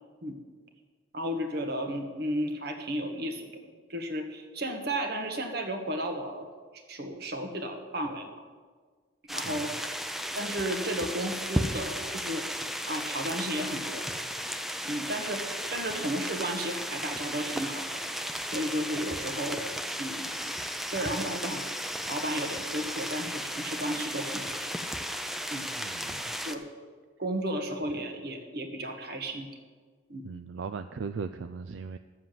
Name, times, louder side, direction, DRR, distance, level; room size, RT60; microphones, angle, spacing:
voice 1, 1.1-3.6 3.9-6.5 6.9-8.3 9.3-10.0 10.3-12.5 12.9-14.1 14.8-18.2 18.5-19.6 20.0-20.4 20.8-24.7 25.5-25.7 26.4-26.6 27.2-29.5 30.1-30.2, right 1 dB, 55° right, 5 dB, 1.5 m, -34 dB
sound 1, 9.3-26.6, equal, ahead, 0.5 m, -35 dB
voice 2, 25.8-26.3 30.2-32.0, right 5 dB, 75° right, 10 dB, 0.4 m, -38 dB
12.5 x 7.5 x 7.6 m, 1.5 s
head